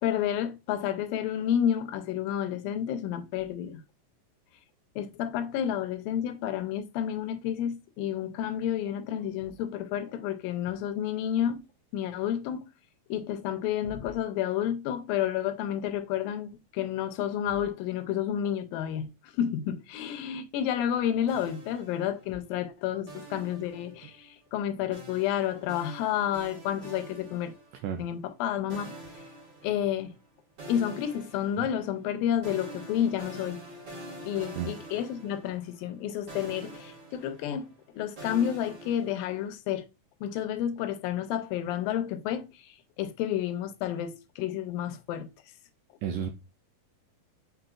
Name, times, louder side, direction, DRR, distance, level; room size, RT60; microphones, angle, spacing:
voice 1, 0.0-3.8 5.0-11.6 11.9-12.7 13.1-27.5 28.0-28.9 29.6-30.1 30.7-33.6 34.2-39.9 40.2-45.3, left 10 dB, 85° left, 2.4 m, -30 dB
sound 1, 21.3-22.5 23.1-24.3 24.9-28.0 28.7-30.2 30.6-36.0 36.3-39.5, right 1 dB, 50° right, 1.4 m, -46 dB
voice 2, 27.8-28.1 31.6-31.7 34.6-34.7 46.0-46.3, right 8 dB, 80° right, 1.8 m, -32 dB
5.4 x 3.9 x 2.3 m
omnidirectional pair, 4.1 m